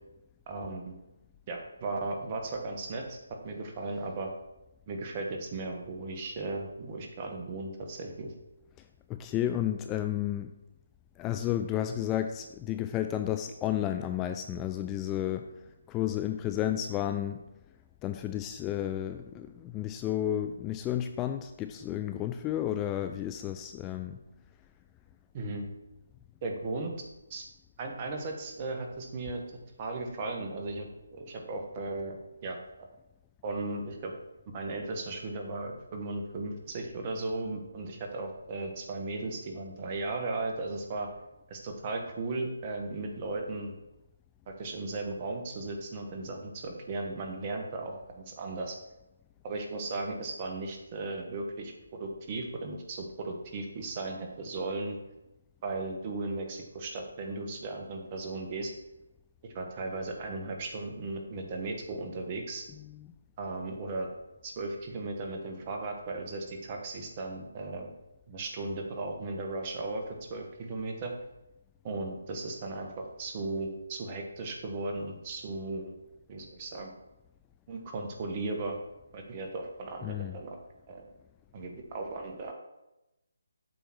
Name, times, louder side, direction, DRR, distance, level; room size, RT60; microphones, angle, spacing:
voice 1, 0.5-1.0 1.5-3.2 3.4-4.3 4.9-8.3 25.3-25.7 26.4-26.9 27.3-27.4 27.8-29.4 29.8-32.6 33.4-34.1 34.5-41.1 41.5-43.7 44.5-48.7 49.4-51.7 52.0-55.0 55.6-58.7 59.5-62.6 63.4-64.1 64.4-67.9 68.3-71.1 71.8-75.9 76.3-76.9 77.7-78.8 79.1-80.6 80.9-81.0 81.5-82.5, right 2 dB, 30° right, 2 dB, 1.3 m, -36 dB
voice 2, 9.1-10.5 11.2-15.5 15.9-17.4 18.0-24.2 62.7-63.1 80.0-80.4, left 11 dB, 15° left, 8 dB, 0.3 m, -32 dB
7.9 x 3.7 x 6.1 m, 0.94 s
figure-of-eight pair, 155°, 0 cm